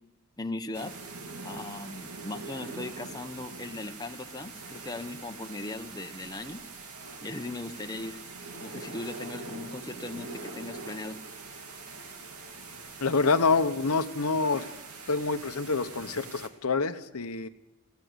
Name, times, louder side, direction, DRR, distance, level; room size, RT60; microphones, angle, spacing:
voice 1, 0.4-1.0 1.4-6.6 7.2-8.2 8.6-11.2, left 2 dB, 15° left, 6 dB, 0.9 m, -38 dB
sound 1, 0.7-16.5, right 3 dB, 85° right, 2.8 m, -43 dB
voice 2, 13.0-14.6 15.1-17.5, left 4 dB, 85° left, 10 dB, 1.0 m, -26 dB
21.5 x 16.5 x 8.0 m, 1.0 s
head